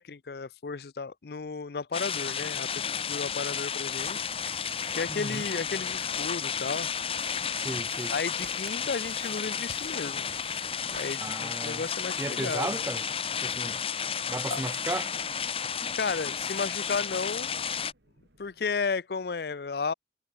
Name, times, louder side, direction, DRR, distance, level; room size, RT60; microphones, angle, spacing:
voice 1, 0.0-4.3 4.9-6.9 8.1-10.2 10.9-12.7 14.5-14.6 15.9-17.5 18.4-19.9, left 4 dB, 60° left, 0.5 m, -33 dB
sound 1, 1.9-17.9, left 7 dB, 30° left, 1.1 m, -32 dB
sound 2, 2.0-18.7, right 1 dB, 85° right, 6.9 m, -65 dB
sound 3, 3.9-11.2, right 5 dB, 70° right, 4.9 m, -50 dB
voice 2, 5.1-5.5 7.5-8.1 11.2-11.8 12.2-13.0 13.4-13.8 14.3-15.1, right 2 dB, 15° right, 0.5 m, -35 dB
head